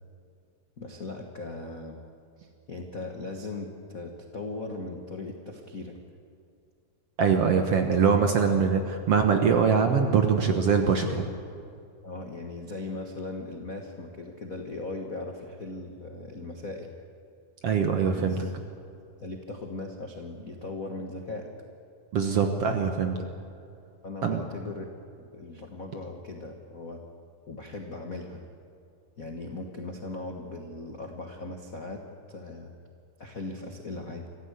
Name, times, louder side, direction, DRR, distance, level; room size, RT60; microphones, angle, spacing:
voice 1, 0.8-2.0 2.4-6.0 8.5-8.7 12.0-16.9 18.1-18.5 19.2-21.5 24.0-24.9 25.3-27.0 27.5-28.4 29.2-32.0 32.3-32.7 33.2-34.3, left 2 dB, 60° left, 2 dB, 0.9 m, -38 dB
voice 2, 7.2-8.8 9.1-11.3 17.6-18.4 22.1-23.2 24.2-24.4, right 6 dB, 60° right, 5 dB, 1.7 m, -23 dB
25.0 x 15.5 x 8.2 m, 2.5 s
omnidirectional pair, 4.0 m